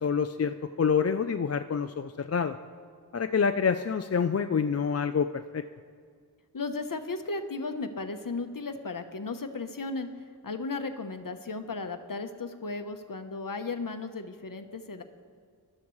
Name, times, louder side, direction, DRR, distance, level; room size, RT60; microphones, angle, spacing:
voice 1, 0.0-2.6 3.1-5.6, left 6 dB, 40° left, 8 dB, 0.4 m, -27 dB
voice 2, 6.5-10.1 10.4-15.0, left 3 dB, 55° left, 7 dB, 1.0 m, -35 dB
20.5 x 12.5 x 3.2 m, 2.1 s
wide cardioid pair, 55°, 39 cm